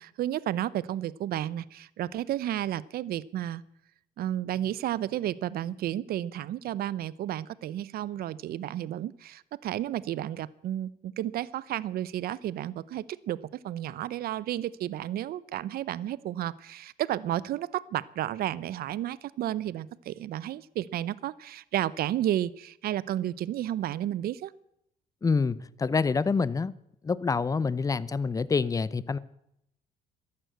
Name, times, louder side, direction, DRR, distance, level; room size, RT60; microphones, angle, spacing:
voice 1, 0.0-3.6 4.2-13.4 13.6-24.5, right 12 dB, 65° right, 0.7 m, -32 dB
voice 2, 25.2-26.7 27.0-29.2, left 4 dB, 20° left, 0.6 m, -27 dB
13.5 x 11.5 x 7.9 m
cardioid pair, 110°, 17 cm